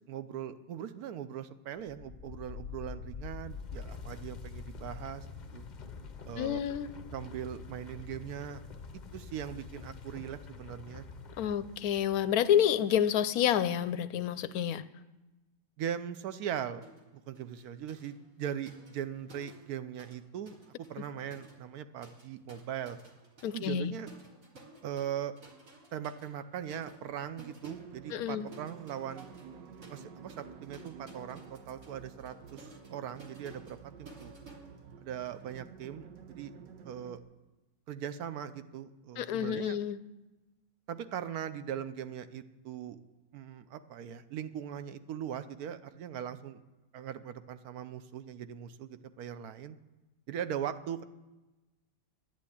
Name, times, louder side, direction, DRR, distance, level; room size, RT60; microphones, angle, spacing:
voice 1, 0.1-5.3 5.5-5.7 6.2-6.6 7.1-8.6 9.1-11.1 15.8-16.8 17.3-23.0 23.4-24.1 24.8-25.3 25.9-29.3 29.9-34.3 35.0-36.5 36.8-37.2 37.9-39.8 40.9-43.0 43.3-46.6 46.9-49.8 50.3-51.0, right 9 dB, 65° right, 12 dB, 1.1 m, -40 dB
sound 1, 1.8-12.6, left 5 dB, 45° left, 0.5 m, -46 dB
voice 2, 6.4-6.9 11.4-14.8 23.4-23.9 28.1-28.5 39.2-40.0, left 9 dB, 70° left, 14 dB, 0.9 m, -29 dB
sound 2, 16.8-17.1 17.3-20.2 20.5-35.4, right 2 dB, 50° right, 2.2 m, -55 dB
sound 3, 27.6-37.2, right 7 dB, 85° right, 1.5 m, -51 dB
10.5 x 9.7 x 8.5 m, 1.1 s
omnidirectional pair, 1.9 m